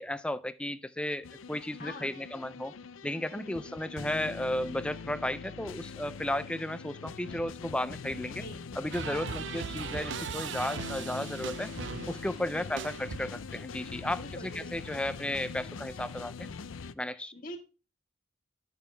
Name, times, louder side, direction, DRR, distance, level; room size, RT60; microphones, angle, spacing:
voice 1, 0.0-2.7 3.0-8.4 8.8-11.7 12.1-16.5 16.9-17.3, left 1 dB, 5° left, 0.3 m, -34 dB
sound 1, 1.2-16.9, left 5 dB, 80° left, 0.5 m, -43 dB
voice 2, 1.8-2.2 3.3-3.8 8.3-8.6 9.0-9.5 12.5-12.9 14.1-14.7 17.1-17.6, left 1 dB, 45° left, 1.7 m, -45 dB
sound 2, 8.9-13.6, right 6 dB, 65° right, 0.5 m, -39 dB
11.5 x 6.9 x 3.2 m
head